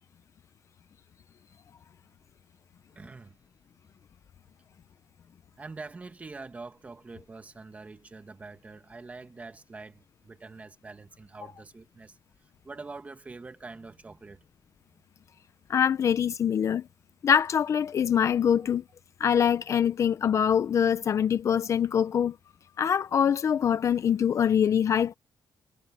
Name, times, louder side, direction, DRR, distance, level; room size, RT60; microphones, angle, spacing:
voice 1, 2.9-3.4 5.5-14.5 14.8-15.0 18.6-18.8, right 3 dB, 20° right, 1.9 m, -45 dB
voice 2, 15.7-16.9 17.2-18.8 19.2-22.4 22.8-25.1, left 8 dB, 45° left, 0.6 m, -24 dB
wide cardioid pair, 170°, 7 cm